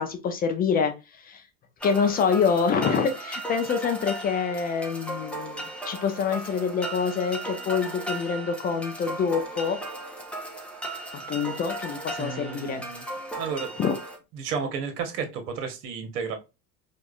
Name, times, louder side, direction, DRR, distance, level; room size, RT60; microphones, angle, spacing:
voice 1, 0.0-1.4 1.8-9.8 11.3-12.8 13.8-14.0, left 6 dB, 20° left, 6 dB, 0.3 m, -26 dB
sound 1, 1.8-14.2, right 1 dB, ahead, 0.8 m, -36 dB
voice 2, 12.2-13.0 13.3-13.8 14.3-16.3, right 6 dB, 65° right, 7 dB, 1.1 m, -32 dB
4.6 x 2.5 x 2.3 m, 0.26 s
figure-of-eight pair, 70°, 50 cm